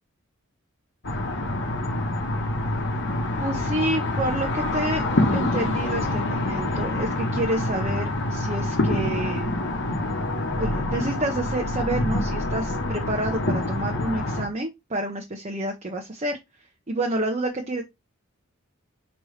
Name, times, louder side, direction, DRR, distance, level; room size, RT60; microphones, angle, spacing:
sound 1, 1.0-14.5, left 1 dB, 55° left, 1.0 m, -26 dB
voice 1, 3.4-5.0 5.3-9.6 10.6-16.4 16.9-17.8, right 1 dB, 30° right, 2 dB, 0.7 m, -29 dB
5.2 x 3.0 x 3.2 m, 0.20 s
head